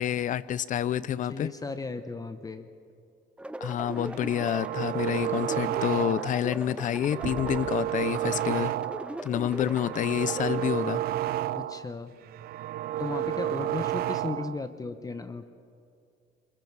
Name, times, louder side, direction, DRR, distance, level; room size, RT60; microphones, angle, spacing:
voice 1, 0.0-1.5 3.6-8.7 9.2-11.0, left 10 dB, 50° left, 19 dB, 0.6 m, -28 dB
voice 2, 1.3-2.7 11.5-12.1 13.0-15.5, left 3 dB, 20° left, 10 dB, 0.9 m, -36 dB
sound 1, 3.4-10.7, right 1 dB, 5° right, 0.8 m, -39 dB
sound 2, 4.1-6.5 6.8-9.2 9.5-11.9 12.2-14.6, right 12 dB, 65° right, 0.4 m, -31 dB
sound 3, 7.1-12.3 12.7-14.5, right 5 dB, 85° right, 3.4 m, -47 dB
26.5 x 22.0 x 4.8 m, 2.4 s
cardioid pair, 110°, 17 cm